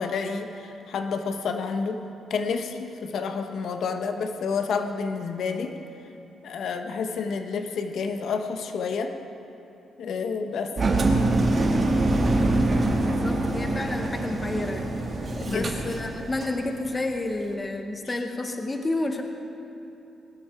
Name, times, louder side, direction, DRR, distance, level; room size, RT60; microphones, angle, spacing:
voice 1, 0.0-2.0 2.3-5.7 6.4-9.1 10.0-11.1 15.4-15.7, left 5 dB, 70° left, 6 dB, 1.0 m, -29 dB
Engine, 10.8-16.6, right 2 dB, 40° right, 1.8 m, -24 dB
voice 2, 13.2-14.9 15.5-19.2, left 2 dB, 25° left, 4 dB, 1.1 m, -30 dB
20.5 x 12.5 x 4.5 m, 2.9 s
cardioid pair, 100°, 0 cm